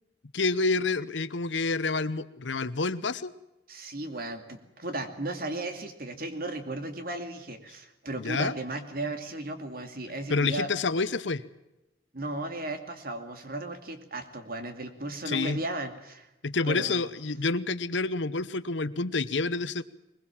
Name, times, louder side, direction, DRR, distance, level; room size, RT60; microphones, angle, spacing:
voice 1, 0.3-3.3 8.2-8.6 10.3-11.4 15.2-15.6 16.4-19.8, left 3 dB, 85° left, 14 dB, 1.0 m, -28 dB
voice 2, 3.7-10.7 12.1-16.3 16.6-17.1, right 2 dB, 55° right, 7 dB, 2.5 m, -35 dB
21.5 x 21.5 x 7.4 m, 0.94 s
head